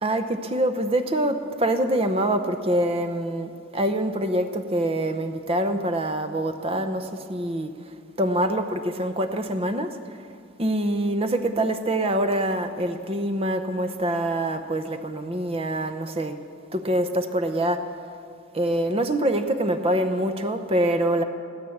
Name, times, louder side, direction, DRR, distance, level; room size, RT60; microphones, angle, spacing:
voice 1, 0.0-7.7 8.2-10.0 10.6-16.4 16.7-17.9 18.5-21.2, right 1 dB, 30° right, 8 dB, 0.7 m, -25 dB
16.5 x 12.5 x 7.1 m, 2.3 s
head